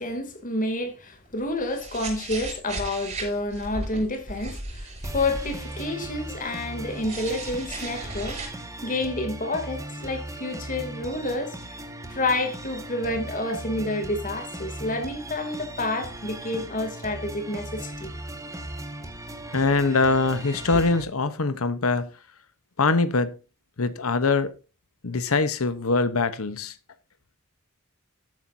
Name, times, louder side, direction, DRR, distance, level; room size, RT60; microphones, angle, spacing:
voice 1, 0.0-11.6 12.1-18.1 20.7-20.8, left 2 dB, 40° left, 2.8 m, -29 dB
sound 1, 1.3-6.2 6.9-8.5, right 2 dB, 30° right, 7.3 m, -36 dB
sound 2, 5.0-21.0, right 1 dB, 15° right, 1.7 m, -38 dB
voice 2, 19.5-22.1 22.8-23.4 23.8-24.5 25.0-26.8, left 3 dB, 85° left, 1.0 m, -23 dB
13.5 x 9.7 x 2.7 m
head